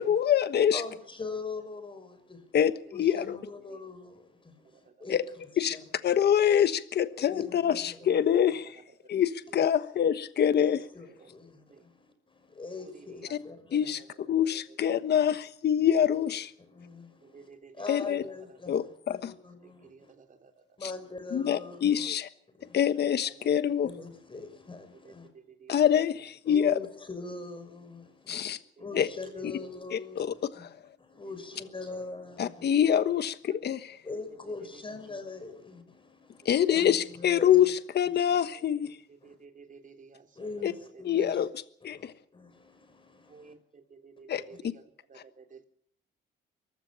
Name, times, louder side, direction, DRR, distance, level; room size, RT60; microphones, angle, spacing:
voice 1, 0.0-0.8 2.5-3.4 5.1-5.2 5.6-5.8 6.0-8.8 9.1-10.8 13.3-13.4 13.7-16.5 17.9-18.2 18.7-19.3 21.3-22.3 22.7-23.9 25.7-26.8 28.3-28.6 28.9-29.1 29.9-30.3 32.4-34.0 36.4-38.9 40.6-40.7 41.1-41.5 41.8-42.1 44.3-44.4, left 9 dB, 55° left, 12 dB, 1.2 m, -25 dB
voice 2, 0.7-2.6 2.9-5.2 5.5-5.8 7.1-8.3 10.5-14.0 15.8-15.9 16.2-16.3 16.6-17.5 17.7-20.1 20.8-22.1 22.5-22.8 23.8-25.3 26.5-32.7 34.0-37.7 38.2-38.4 39.2-39.4 40.3-41.5 41.8-43.6, left 3 dB, 25° left, 9 dB, 6.0 m, -43 dB
voice 3, 4.6-5.1 7.5-8.1 8.6-9.7 9.9-10.0 11.1-11.4 11.7-11.8 12.8-13.4 13.7-15.1 17.2-18.6 19.6-20.6 23.1-23.6 24.9-25.8 28.8-29.4 31.2-31.7 33.5-33.6 34.1-34.8 35.1-35.3 36.5-36.9 38.5-40.6 40.9-41.2 43.3-45.6, right 5 dB, 40° right, 6 dB, 3.4 m, -54 dB
23.5 x 15.0 x 8.8 m, 0.65 s
cardioid pair, 90°, 20 cm